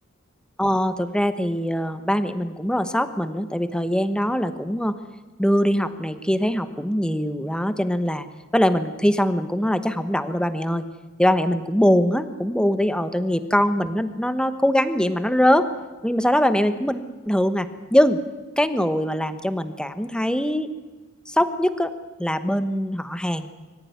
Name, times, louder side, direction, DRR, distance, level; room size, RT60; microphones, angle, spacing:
voice 1, 0.6-4.9 5.4-8.3 8.5-10.8 11.2-15.7 16.0-18.2 18.6-20.7 21.3-21.9 22.2-23.5, equal, 5° left, 10 dB, 1.1 m, -22 dB
24.5 x 15.0 x 9.5 m, 1.3 s
head